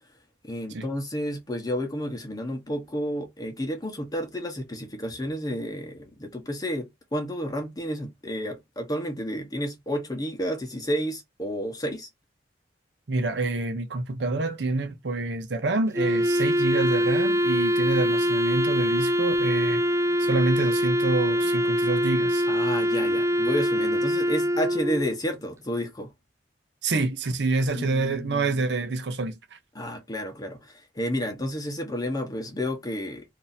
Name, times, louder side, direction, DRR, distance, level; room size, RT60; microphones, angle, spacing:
voice 1, 0.4-12.1 22.5-26.1 27.7-28.6 29.7-33.2, equal, 20° left, 1.0 m, -31 dB
voice 2, 13.1-19.8 20.2-22.5 26.8-29.6, right 3 dB, 75° right, 0.7 m, -27 dB
Wind instrument woodwind instrument, 15.9-25.2, equal, 15° right, 0.3 m, -24 dB
2.7 x 2.7 x 4.0 m
head